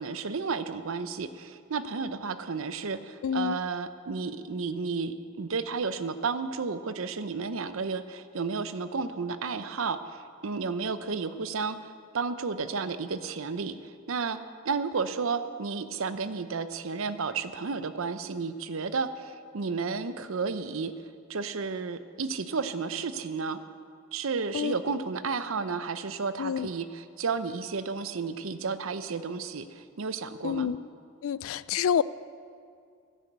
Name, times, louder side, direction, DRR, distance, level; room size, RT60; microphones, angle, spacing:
voice 1, 0.0-14.4 14.6-20.9 21.3-23.6 24.1-30.7, right 4 dB, 75° right, 12 dB, 0.7 m, -32 dB
voice 2, 3.2-3.6 24.5-24.7 26.4-26.7 30.4-30.8 31.2-32.0, left 8 dB, 75° left, 18 dB, 0.3 m, -28 dB
11.0 x 10.0 x 8.0 m, 2.3 s
head